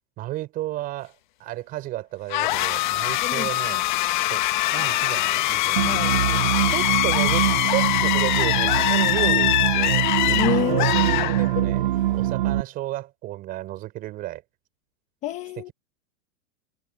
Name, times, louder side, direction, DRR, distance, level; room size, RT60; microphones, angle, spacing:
voice 1, 0.2-3.8 4.2-4.4 4.7-6.0 6.7-10.1 10.6-14.4, right 16 dB, 20° right, 6.5 m, -33 dB
sound 1, 2.3-11.9, left 16 dB, 35° left, 1.2 m, -23 dB
voice 2, 5.8-6.1 10.3-10.9 15.2-15.7, left 12 dB, 15° left, 1.4 m, -28 dB
sound 2, 5.8-12.6, right 13 dB, 45° right, 0.5 m, -24 dB
supercardioid pair, 180°, 39 cm